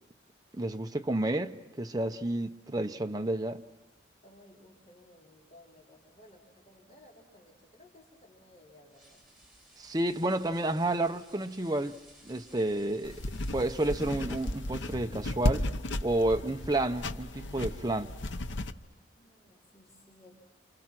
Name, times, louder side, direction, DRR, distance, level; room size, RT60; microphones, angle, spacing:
voice 1, 0.5-3.6 9.8-11.9 12.2-13.2 13.5-15.7 16.0-18.1, right 1 dB, 20° right, 0.8 m, -30 dB
voice 2, 4.2-9.3 18.7-20.4, left 1 dB, 35° left, 4.0 m, -58 dB
sound 1, 8.9-14.8, right 1 dB, ahead, 6.1 m, -58 dB
sound 2, 13.0-18.7, left 1 dB, 75° left, 0.9 m, -34 dB
29.0 x 28.0 x 6.0 m
head